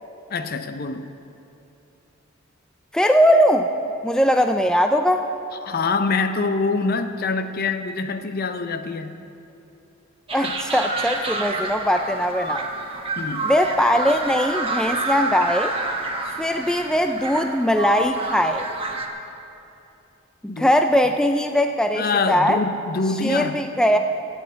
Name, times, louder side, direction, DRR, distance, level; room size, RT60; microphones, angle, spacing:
voice 1, 0.3-1.1 5.6-9.2 10.4-10.5 13.2-13.5 20.5-20.7 21.9-23.6, left 4 dB, 45° left, 9 dB, 0.6 m, -25 dB
voice 2, 2.9-3.7 4.0-5.2 10.3-12.7 13.4-15.7 16.4-18.6 20.4-22.6 23.2-24.0, equal, 5° left, 5 dB, 0.3 m, -20 dB
sound 1, 10.3-19.1, right 3 dB, 25° right, 1.0 m, -29 dB
12.5 x 7.8 x 8.4 m, 2.8 s
head